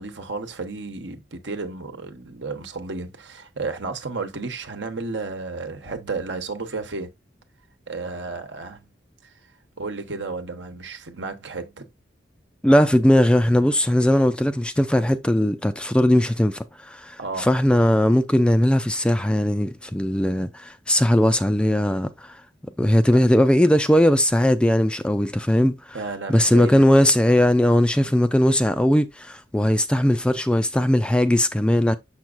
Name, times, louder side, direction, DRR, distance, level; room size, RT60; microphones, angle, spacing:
voice 1, 0.0-7.1 7.9-8.9 9.2-9.3 9.8-11.9 17.2-17.5 25.9-26.9 27.3-27.4 28.0-28.2, right 3 dB, 75° right, 1.1 m, -32 dB
voice 2, 12.6-22.4 22.8-26.0 26.3-32.0, left 1 dB, 5° left, 0.3 m, -19 dB
7.1 x 5.9 x 2.5 m
head